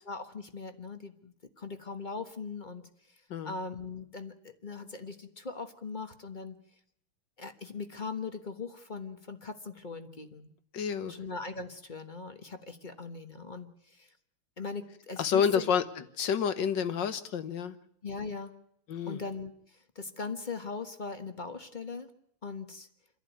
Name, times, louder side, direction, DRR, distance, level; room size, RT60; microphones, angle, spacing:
voice 1, 0.1-2.9 3.4-6.6 7.4-10.5 11.1-14.1 14.6-15.7 18.0-18.5 19.1-19.5 19.9-22.1 22.4-22.9, left 4 dB, 25° left, 8 dB, 1.1 m, -40 dB
voice 2, 10.7-11.2 15.2-17.8 18.9-19.2, left 7 dB, 60° left, 12 dB, 1.8 m, -29 dB
28.5 x 11.5 x 9.4 m, 0.72 s
omnidirectional pair, 2.4 m